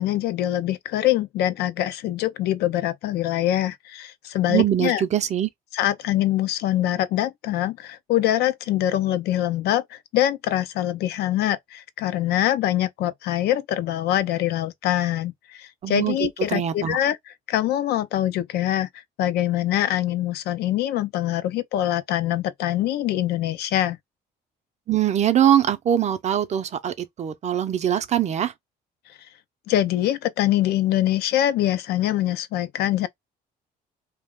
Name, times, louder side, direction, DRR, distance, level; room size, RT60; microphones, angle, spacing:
voice 1, 0.0-5.0 5.7-17.2 17.5-18.9 19.2-24.0 29.7-33.1, left 13 dB, 75° left, 0.4 m, -24 dB
voice 2, 4.5-5.5 15.8-17.0 24.9-28.5, right 10 dB, 40° right, 0.5 m, -22 dB
2.4 x 2.1 x 3.5 m
cardioid pair, 110°, 17 cm